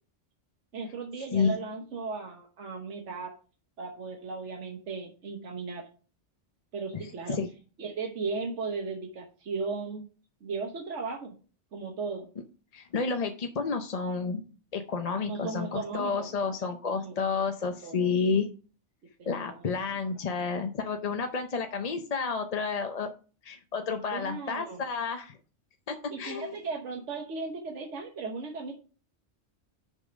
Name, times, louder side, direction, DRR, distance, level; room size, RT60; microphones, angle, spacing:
voice 1, 0.7-3.3 3.8-5.8 6.7-7.4 7.8-10.0 10.4-11.3 11.7-12.3 15.3-16.3 17.0-17.2 17.8-18.1 19.2-20.0 24.1-24.8 26.1-28.7, right 4 dB, 80° right, 1 dB, 1.4 m, -36 dB
voice 2, 12.7-14.5 14.7-18.5 19.3-23.1 23.4-25.4 25.9-26.5, left 5 dB, 40° left, 6 dB, 0.6 m, -30 dB
6.7 x 5.5 x 5.1 m, 0.38 s
omnidirectional pair, 1.2 m